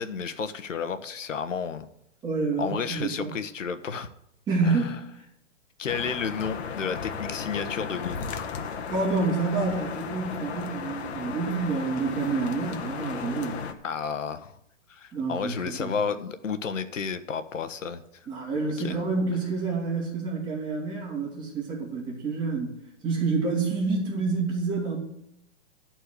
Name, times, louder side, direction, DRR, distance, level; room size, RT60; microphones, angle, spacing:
voice 1, 0.0-1.9 2.6-4.1 4.6-5.0 5.8-8.5 13.8-14.5 14.9-18.0 18.8-19.0, left 6 dB, 85° left, 11 dB, 1.1 m, -32 dB
voice 2, 2.2-3.3 4.5-4.9 8.9-13.6 15.1-15.9 18.3-25.0, right 4 dB, 10° right, -8 dB, 2.8 m, -28 dB
sound 1, 5.9-13.7, left 6 dB, 60° left, 1.3 m, -35 dB
13.0 x 4.4 x 8.3 m, 0.78 s
hypercardioid pair, 140°, 37 cm